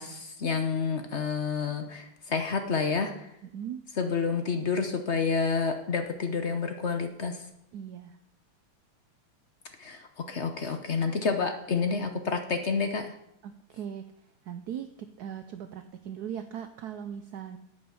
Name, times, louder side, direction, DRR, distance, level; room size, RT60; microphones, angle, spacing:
voice 1, 0.0-3.3 4.0-7.4 9.8-13.1, left 5 dB, 55° left, 7 dB, 0.7 m, -29 dB
voice 2, 3.4-3.8 7.7-8.2 13.4-17.6, right 9 dB, 70° right, 9 dB, 0.9 m, -39 dB
9.4 x 8.6 x 7.0 m, 0.80 s
omnidirectional pair, 2.3 m